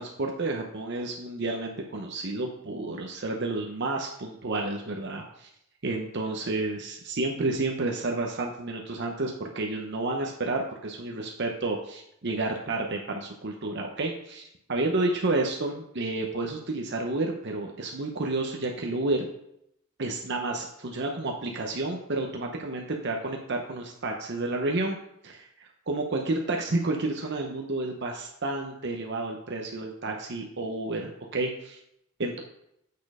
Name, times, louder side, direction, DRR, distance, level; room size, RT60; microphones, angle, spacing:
voice 1, 0.0-5.5 5.8-19.2 20.0-25.0 25.2-25.5 25.9-31.8 32.2-32.4, right 2 dB, 50° right, 1 dB, 0.8 m, -30 dB
8.4 x 4.4 x 4.9 m, 0.76 s
head